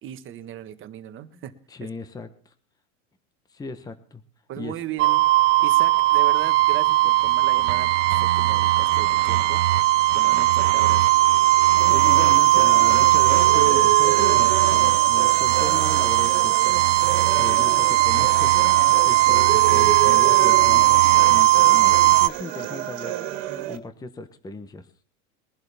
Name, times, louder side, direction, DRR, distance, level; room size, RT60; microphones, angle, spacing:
voice 1, 0.0-1.5 1.8-1.9 4.5-5.2 5.6-9.8 10.1-11.1, right 11 dB, 35° right, 9 dB, 1.4 m, -36 dB
voice 2, 1.7-2.5 3.5-4.2 4.6-4.8 11.8-16.6 17.3-23.2 23.7-24.9, left 3 dB, 10° left, 10 dB, 1.0 m, -37 dB
sound 1, 5.0-22.3, right 17 dB, 85° right, 0.7 m, -18 dB
sound 2, 11.8-23.8, right 12 dB, 55° right, 2.2 m, -31 dB
22.0 x 11.5 x 3.4 m, 0.40 s
supercardioid pair, 130°, 35 cm